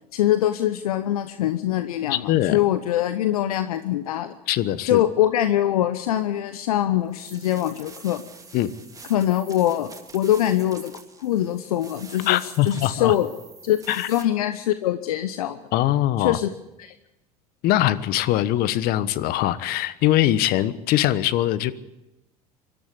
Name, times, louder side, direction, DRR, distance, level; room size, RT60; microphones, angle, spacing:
voice 1, 0.1-4.4 4.9-8.2 9.1-10.9 11.2-13.3 13.6-13.8 14.1-15.6 16.2-16.5 16.8-16.9, left 12 dB, 75° left, 11 dB, 0.9 m, -23 dB
voice 2, 2.1-2.6 4.5-5.0 8.5-8.7 12.3-13.1 13.9-14.1 15.7-16.4 17.6-21.7, left 13 dB, 50° left, 15 dB, 1.1 m, -22 dB
sound 1, 7.1-14.2, right 4 dB, 20° right, 2.7 m, -46 dB
24.5 x 12.5 x 8.4 m, 0.95 s
hypercardioid pair, 75°, 19 cm